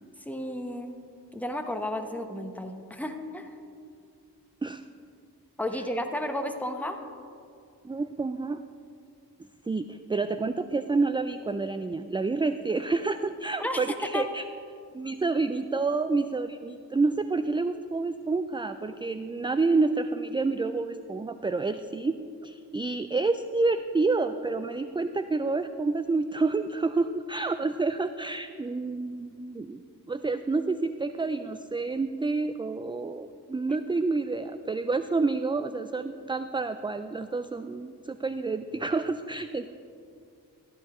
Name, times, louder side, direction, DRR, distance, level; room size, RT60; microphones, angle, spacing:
voice 1, 0.2-1.0 1.3-3.5 5.6-7.0 13.6-14.2, left 1 dB, 5° left, 5 dB, 1.0 m, -33 dB
voice 2, 7.8-8.6 9.7-14.4 14.9-22.2 22.4-29.8 30.1-39.7, right 3 dB, 15° right, 10 dB, 0.3 m, -28 dB
14.0 x 10.5 x 3.1 m, 2.3 s
cardioid pair, 40°, 41 cm